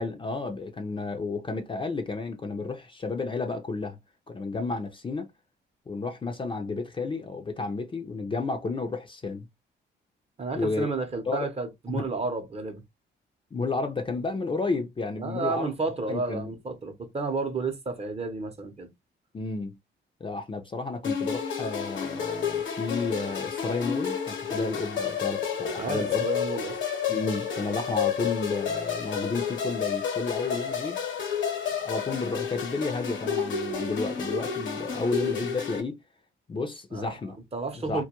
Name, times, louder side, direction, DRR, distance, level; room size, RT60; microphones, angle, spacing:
voice 1, 0.0-4.0 4.3-5.3 5.9-9.5 10.5-10.9 11.3-11.5 11.9-12.1 13.5-15.7 16.1-16.5 19.3-19.8 20.2-26.3 27.1-31.0 31.7-36.0 36.5-37.4 37.7-38.0, left 3 dB, 25° left, 0.5 m, -32 dB
voice 2, 10.4-12.8 15.2-18.9 25.8-26.8 36.9-37.2 37.5-38.0, right 3 dB, 30° right, 0.7 m, -31 dB
sound 1, 21.0-35.8, left 7 dB, 70° left, 0.9 m, -30 dB
2.3 x 2.2 x 2.8 m
cardioid pair, 90°, 20 cm